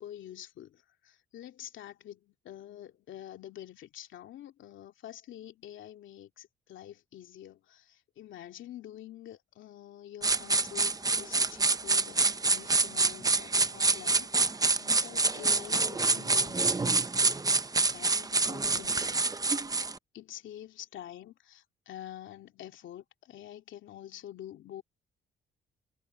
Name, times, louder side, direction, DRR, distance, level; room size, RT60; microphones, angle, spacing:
voice 1, 0.0-16.6 17.8-19.2 20.1-24.8, left 11 dB, 75° left, 2.6 m, -47 dB
sound 1, 10.2-20.0, right 3 dB, 20° right, 0.8 m, -27 dB
cardioid pair, 90°, 20 cm